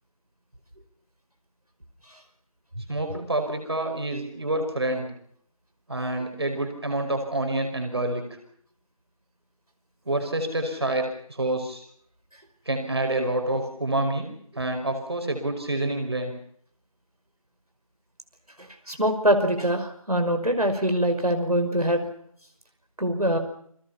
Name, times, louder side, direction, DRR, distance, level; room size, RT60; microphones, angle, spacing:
voice 1, 2.9-5.1 5.9-8.2 10.1-11.8 12.7-14.3 14.6-16.3, right 1 dB, 45° right, 5 dB, 5.4 m, -27 dB
voice 2, 18.6-22.1 23.0-23.4, equal, 90° right, 5 dB, 5.6 m, -24 dB
29.5 x 22.5 x 5.8 m, 0.66 s
figure-of-eight pair, 170°, 19 cm